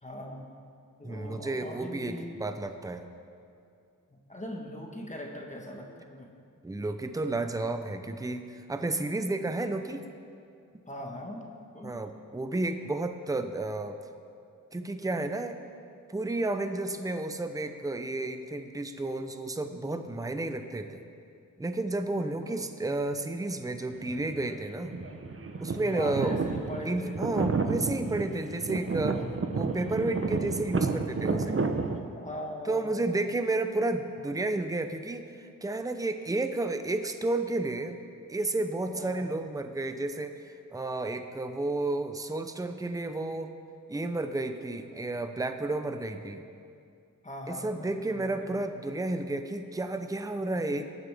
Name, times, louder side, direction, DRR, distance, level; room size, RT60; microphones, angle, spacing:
voice 1, 0.0-0.5 1.0-2.3 4.1-6.3 10.9-12.0 22.2-22.6 25.8-27.2 29.1-29.3 31.5-31.7 32.1-33.0 38.9-39.3 47.2-48.7, left 1 dB, 20° left, 0 dB, 1.4 m, -41 dB
voice 2, 1.0-3.1 6.6-10.0 11.8-14.0 14.7-15.6 16.1-21.0 21.6-24.9 25.6-26.4 26.8-29.2 29.5-31.6 32.7-38.0 38.3-43.5 43.9-46.4 47.5-50.8, right 2 dB, 10° right, 7 dB, 0.7 m, -32 dB
sound 1, 23.9-24.5 24.8-32.0, right 4 dB, 40° right, 0.9 m, -31 dB
20.0 x 9.0 x 3.6 m, 2.5 s
wide cardioid pair, 85°, 35 cm